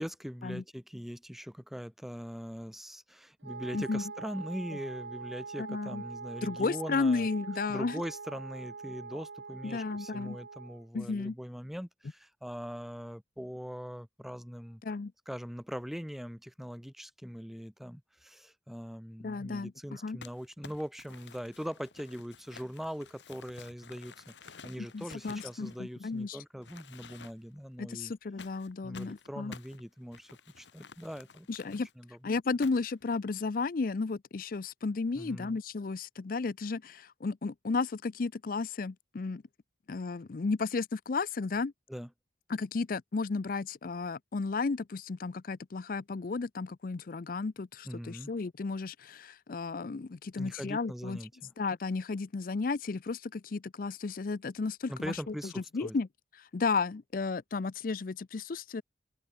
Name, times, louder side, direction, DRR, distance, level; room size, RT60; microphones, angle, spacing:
voice 1, 0.0-7.3 7.7-14.8 15.3-28.1 28.8-30.3 30.6-32.2 35.1-35.6 41.9-42.1 47.8-48.3 50.4-51.5 54.9-56.0, equal, ahead, 0.8 m, -41 dB
Wind instrument woodwind instrument, 3.4-10.8, right 4 dB, 85° right, 1.1 m, -43 dB
voice 2, 5.6-6.0 6.4-8.0 9.6-10.4 10.9-11.3 14.8-15.1 19.2-20.2 24.9-26.4 27.8-29.5 31.5-31.9 32.2-39.4 39.9-41.7 42.5-51.2 51.6-56.1 56.4-58.8, left 4 dB, 50° left, 0.5 m, -33 dB
Crumpling crinkling, 20.2-26.2 26.6-27.6 28.4-31.9 32.6-33.0, left 5 dB, 90° left, 1.4 m, -52 dB
open air
head